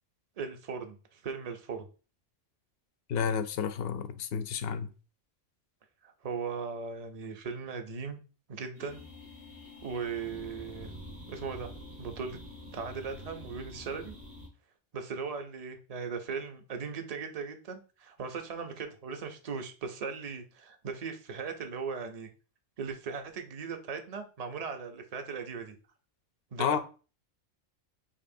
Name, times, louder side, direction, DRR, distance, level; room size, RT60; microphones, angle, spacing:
voice 1, 0.4-1.9 6.0-8.2 8.5-9.0 9.8-10.9 11.3-12.4 12.7-14.2 14.9-22.3 22.8-25.8 26.5-26.8, right 5 dB, 45° right, 0.5 m, -38 dB
voice 2, 3.1-4.9 26.6-26.8, left 7 dB, 60° left, 0.7 m, -31 dB
sound 1, 8.7-14.5, left 1 dB, 75° right, 2.4 m, -47 dB
6.8 x 2.9 x 2.6 m
omnidirectional pair, 1.3 m